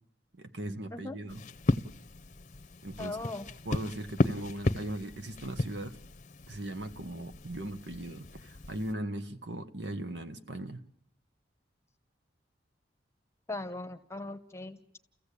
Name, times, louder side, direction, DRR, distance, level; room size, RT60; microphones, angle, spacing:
voice 1, 0.3-1.4 2.8-3.2 3.6-6.0 6.5-10.8, right 1 dB, 65° right, 1.3 m, -38 dB
sound 1, 1.3-8.9, left 2 dB, 40° left, 0.8 m, -35 dB
voice 2, 3.0-3.5 13.5-14.8, left 2 dB, 15° left, 1.0 m, -39 dB
30.0 x 15.0 x 8.4 m
head